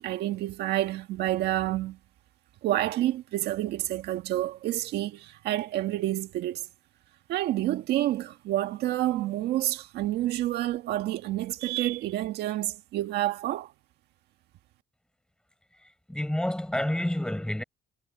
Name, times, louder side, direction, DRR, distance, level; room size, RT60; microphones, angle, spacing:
voice 1, 0.0-2.0 2.6-6.7 7.3-13.7, right 14 dB, 80° right, 1.6 m, -29 dB
voice 2, 16.1-17.6, left 1 dB, 5° left, 7.2 m, -28 dB
cardioid pair, 110°, 17 cm